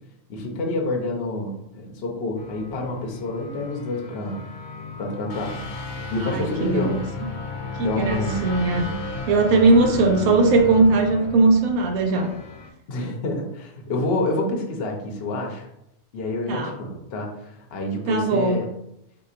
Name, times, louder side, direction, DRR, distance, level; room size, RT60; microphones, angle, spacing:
voice 1, 0.3-4.4 5.0-5.6 6.1-7.0 7.8-8.4 9.8-9.9 12.9-15.7 16.1-18.7, left 2 dB, 55° left, 1 dB, 0.8 m, -28 dB
sound 1, 2.4-12.7, left 2 dB, 80° left, 1.0 m, -34 dB
voice 2, 6.2-7.0 7.8-8.9 9.3-12.3 16.5-16.7 18.1-18.6, right 3 dB, 85° right, 4 dB, 1.1 m, -19 dB
3.8 x 2.8 x 2.4 m, 0.82 s
omnidirectional pair, 1.4 m